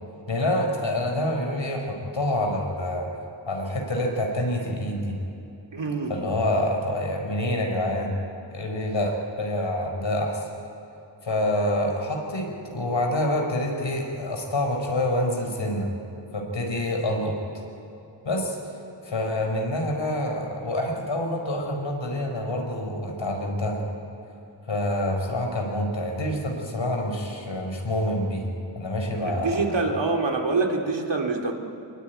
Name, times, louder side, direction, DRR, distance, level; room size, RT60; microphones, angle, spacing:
voice 1, 0.3-3.1 3.5-5.2 6.1-8.2 8.5-10.5 11.2-15.9 16.3-17.4 18.2-18.6 19.0-23.8 24.7-28.5 28.7-29.8, left 1 dB, 85° left, 2 dB, 4.7 m, -27 dB
voice 2, 5.7-6.1 29.2-31.5, right 3 dB, 70° right, 2 dB, 2.7 m, -25 dB
24.5 x 21.5 x 9.4 m, 2.9 s
wide cardioid pair, 75°, 45 cm